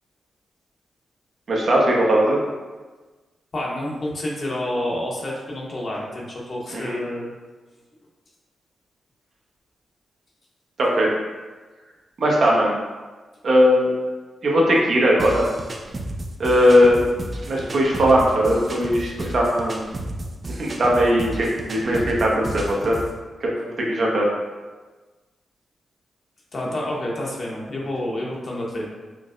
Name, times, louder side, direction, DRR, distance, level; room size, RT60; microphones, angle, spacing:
voice 1, 1.5-2.4 6.7-7.0 10.8-11.1 12.2-12.7 13.4-13.9 14.4-15.5 16.4-17.1 17.5-19.8 20.5-23.0 23.4-24.3, equal, 65° right, -2 dB, 0.7 m, -19 dB
voice 2, 3.5-7.3 26.5-28.9, left 1 dB, 50° left, -3 dB, 0.8 m, -28 dB
sound 1, 15.2-23.2, right 1 dB, 40° right, 0.4 m, -33 dB
4.5 x 2.0 x 2.4 m, 1.3 s
cardioid pair, 55°, 0 cm